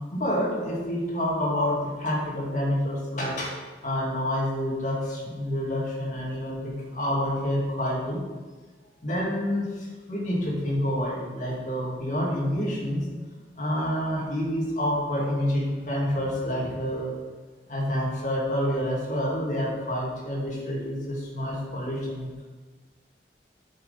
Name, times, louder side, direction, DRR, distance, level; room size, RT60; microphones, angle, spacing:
voice 1, 0.1-3.6 3.8-8.2 9.0-13.0 13.5-17.1 17.7-22.4, equal, 45° left, -4 dB, 2.3 m, -28 dB
9.0 x 6.5 x 4.1 m, 1.3 s
head